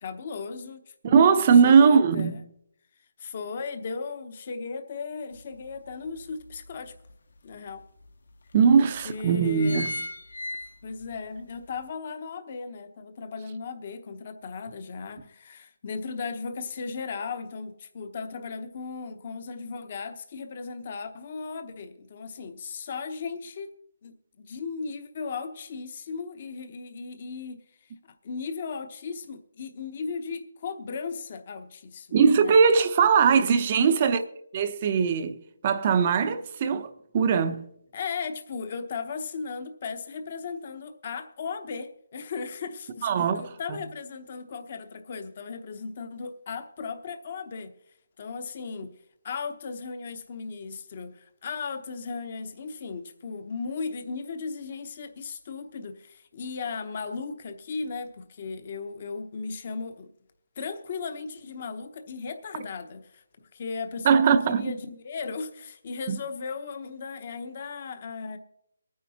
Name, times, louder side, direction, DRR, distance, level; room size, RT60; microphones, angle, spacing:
voice 1, 0.0-2.4 3.2-6.9 7.4-7.8 8.8-9.9 10.8-23.7 24.0-27.6 28.0-32.6 33.8-34.1 37.9-47.7 48.2-49.0 49.2-60.1 60.6-63.2 63.5-68.4, left 5 dB, 30° left, 0.8 m, -36 dB
voice 2, 1.0-2.4 8.5-10.0 32.1-34.2 34.5-35.4 35.6-37.6 43.0-43.4 43.7-43.8 64.0-64.7 66.1-66.2, right 6 dB, 25° right, 0.6 m, -20 dB
sound 1, 5.3-5.4 5.9-7.1 7.7-8.1 8.8-9.0 9.3-11.1 11.5-11.6, left 1 dB, 70° left, 1.3 m, -35 dB
24.0 x 9.5 x 2.8 m
hypercardioid pair, 175°, 0 cm